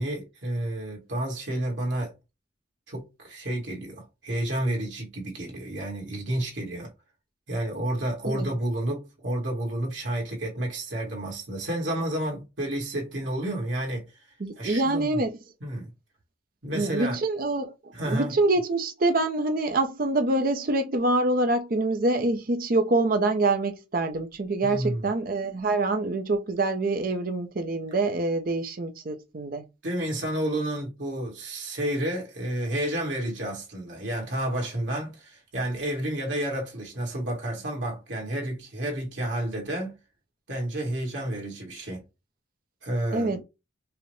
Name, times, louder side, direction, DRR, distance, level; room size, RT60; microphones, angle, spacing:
voice 1, 0.0-2.1 2.9-6.9 7.5-14.1 14.6-15.2 15.6-15.9 16.6-17.2 17.9-18.3 24.6-25.1 29.8-40.0 40.5-42.0 42.8-43.4, right 1 dB, 70° right, 1.5 m, -30 dB
voice 2, 14.4-15.3 16.7-17.7 18.0-29.6 43.1-43.4, right 2 dB, 45° right, 0.5 m, -25 dB
4.8 x 2.1 x 3.1 m
head